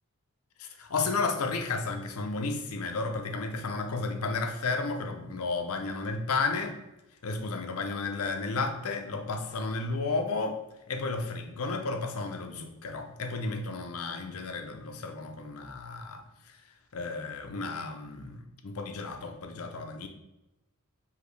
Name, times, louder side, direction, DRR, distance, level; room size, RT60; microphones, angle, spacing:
voice 1, 0.6-6.8 7.2-10.6 10.9-16.6 16.9-20.1, left 3 dB, 85° left, 5 dB, 0.6 m, -33 dB
5.0 x 2.8 x 3.2 m, 0.96 s
head